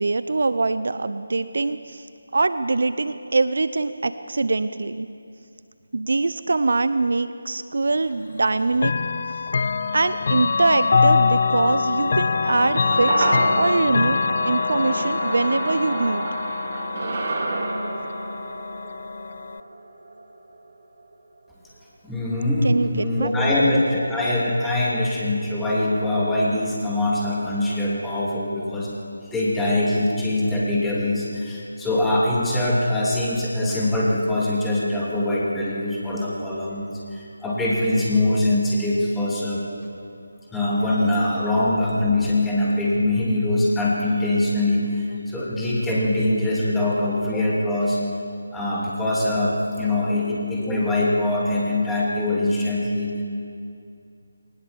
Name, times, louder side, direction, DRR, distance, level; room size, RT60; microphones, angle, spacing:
voice 1, 0.0-2.1 2.3-5.1 5.9-8.9 9.9-16.3 22.6-23.6, right 3 dB, 55° right, 13 dB, 0.6 m, -23 dB
Chime / Clock, 8.8-19.6, left 4 dB, 45° left, 0.5 m, -24 dB
sound 1, 12.3-20.8 21.1-21.2, right 3 dB, 40° right, 2.1 m, -30 dB
voice 2, 22.0-28.9 29.2-39.6 40.5-48.0 48.5-53.2, left 1 dB, 5° left, -6 dB, 2.8 m, -23 dB
21.5 x 19.0 x 7.1 m, 2.5 s
figure-of-eight pair, 155°, 0 cm